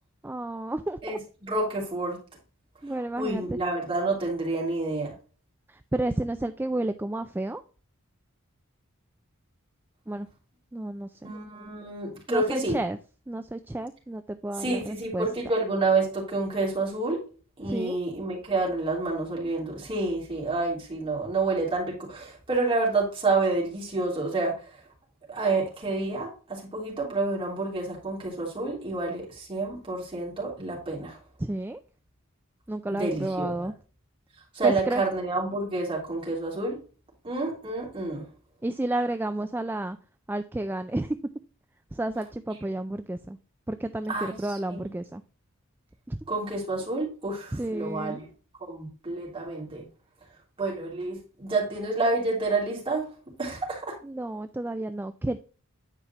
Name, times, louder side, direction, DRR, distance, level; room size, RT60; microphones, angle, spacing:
voice 1, 0.2-1.2 2.8-3.6 5.7-7.6 10.1-10.3 10.7-11.3 12.3-13.0 13.3-15.3 17.6-18.0 31.4-31.8 32.7-33.7 34.6-35.0 38.6-40.0 40.3-41.2 41.9-43.4 43.7-45.2 46.1-46.2 47.5-48.2 54.0-55.4, right 1 dB, 10° right, 9 dB, 0.3 m, -31 dB
voice 2, 1.0-2.2 3.2-5.1 11.2-12.8 14.6-17.2 17.6-24.6 25.3-31.2 32.9-33.7 34.5-36.8 37.2-38.2 44.1-44.4 44.7-44.9 46.3-48.2 48.7-49.8 50.6-53.1 53.4-54.0, right 3 dB, 25° right, -4 dB, 3.1 m, -29 dB
10.0 x 5.0 x 3.0 m, 0.38 s
head